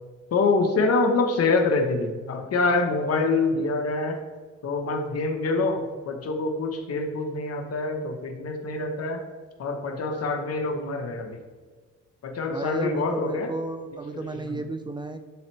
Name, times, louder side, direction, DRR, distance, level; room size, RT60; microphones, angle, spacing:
voice 1, 0.3-4.2 4.6-9.3 9.6-11.4 12.2-13.5 14.1-14.6, left 3 dB, 55° left, 5 dB, 1.2 m, -25 dB
voice 2, 12.5-15.2, right 2 dB, 15° right, 7 dB, 0.5 m, -33 dB
11.0 x 4.0 x 3.3 m, 1.5 s
cardioid pair, 90°, 30 cm